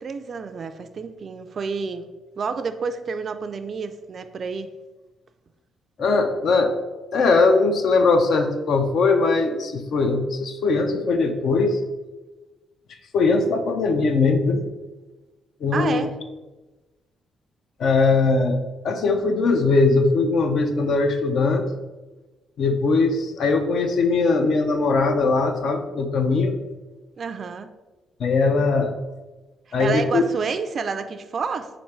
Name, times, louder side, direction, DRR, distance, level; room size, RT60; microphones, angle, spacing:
voice 1, 0.0-2.1 2.4-4.7 15.7-16.2 27.2-27.7 29.8-31.7, right 5 dB, 50° right, 9 dB, 0.3 m, -29 dB
voice 2, 6.0-6.7 7.1-11.8 13.1-14.6 15.6-16.1 17.8-18.6 18.8-21.7 22.6-26.6 28.2-28.9 29.7-30.2, left 3 dB, 65° left, 6 dB, 0.5 m, -20 dB
4.3 x 2.5 x 4.6 m, 1.1 s
cardioid pair, 90°, 0 cm